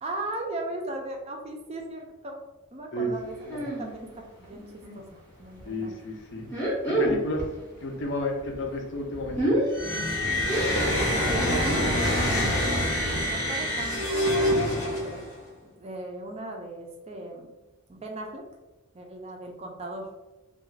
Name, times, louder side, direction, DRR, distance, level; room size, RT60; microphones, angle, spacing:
voice 1, 0.0-2.4 2.7-6.0 11.0-12.8 13.1-15.2 15.6-17.5 17.9-18.4 18.9-20.1, right 2 dB, 25° right, 2 dB, 0.4 m, -38 dB
sound 1, 3.5-3.9 4.2-5.0 5.4-5.6 6.4-7.6 7.8-11.9 12.3-12.6 12.9-13.0 13.2-13.3 13.8-13.9, right 1 dB, 10° left, 0.6 m, -29 dB
voice 2, 5.6-6.5 6.9-7.4 7.8-9.5, left 1 dB, 55° left, 2 dB, 0.5 m, -32 dB
sound 2, 9.7-15.4, equal, 80° left, 0.8 m, -26 dB
2.3 x 2.3 x 3.1 m, 1.1 s
head